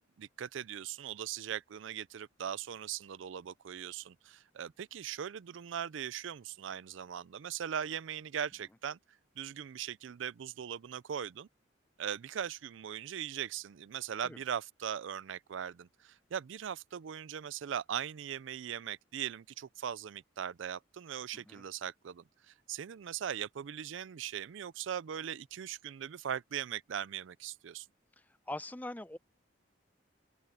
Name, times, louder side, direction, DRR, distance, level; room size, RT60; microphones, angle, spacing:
voice 1, 0.0-9.0 9.4-11.5 12.0-27.9, right 9 dB, 75° right, 0.4 m, -40 dB
voice 2, 21.3-21.6 28.2-29.2, left 1 dB, 10° left, 0.6 m, -43 dB
open air
head